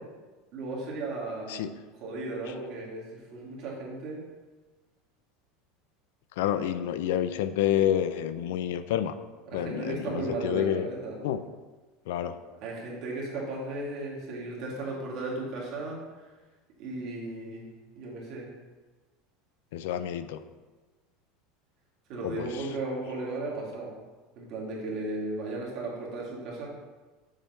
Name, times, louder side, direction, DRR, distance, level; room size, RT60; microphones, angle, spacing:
voice 1, 0.5-1.6 2.0-4.2 9.4-11.2 12.6-16.3 16.8-17.6 17.9-18.5 22.1-23.9 24.4-26.7, right 2 dB, 45° right, -4 dB, 2.1 m, -35 dB
voice 2, 6.4-9.1 9.5-10.9 11.2-11.4 12.1-12.3 19.7-20.4 22.2-22.5, left 10 dB, 80° left, 12 dB, 0.4 m, -28 dB
7.2 x 3.5 x 5.5 m, 1.3 s
supercardioid pair, 170°, 0 cm